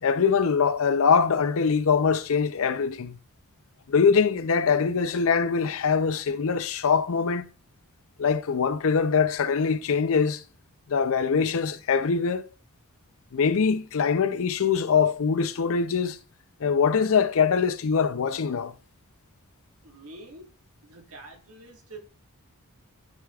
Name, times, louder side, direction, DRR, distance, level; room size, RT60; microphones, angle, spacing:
voice 1, 0.0-3.2 3.9-7.5 8.2-10.4 10.9-12.5 13.3-16.2 16.6-18.7, left 6 dB, 65° left, 0.5 m, -23 dB
voice 2, 19.8-20.5 20.8-22.0, right 2 dB, 75° right, 1.7 m, -46 dB
12.5 x 4.8 x 2.4 m
head